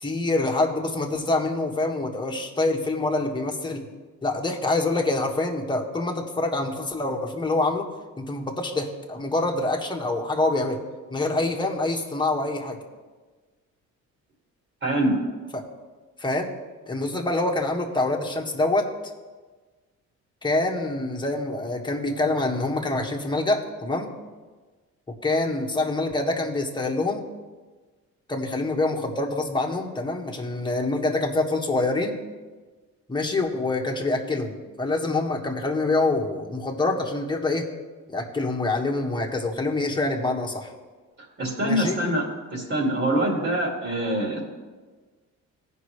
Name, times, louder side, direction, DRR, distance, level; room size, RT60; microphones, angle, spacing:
voice 1, 0.0-3.9 4.2-7.9 8.2-10.8 11.1-12.8 15.5-15.6 16.2-16.5 16.9-18.9 20.4-24.1 25.2-27.2 28.3-32.2 33.1-37.7 38.1-40.7 41.6-42.0, left 2 dB, 15° left, 0 dB, 1.4 m, -26 dB
voice 2, 14.8-15.1 41.4-42.2 42.5-44.5, right 1 dB, 45° right, -2 dB, 2.5 m, -24 dB
16.0 x 5.4 x 3.3 m, 1.4 s
cardioid pair, 90°, 30 cm